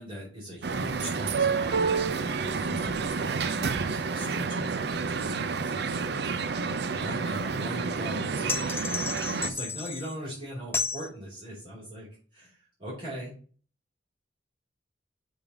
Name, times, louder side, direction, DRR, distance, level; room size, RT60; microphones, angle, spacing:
voice 1, 0.0-8.8 9.4-12.1 12.3-13.3, equal, 30° right, -8 dB, 4.2 m, -41 dB
sound 1, 0.6-9.5, right 5 dB, 65° right, 0.5 m, -29 dB
sound 2, 8.5-10.1 10.7-11.1, left 5 dB, 15° left, 0.6 m, -32 dB
6.9 x 3.6 x 6.0 m, 0.41 s
head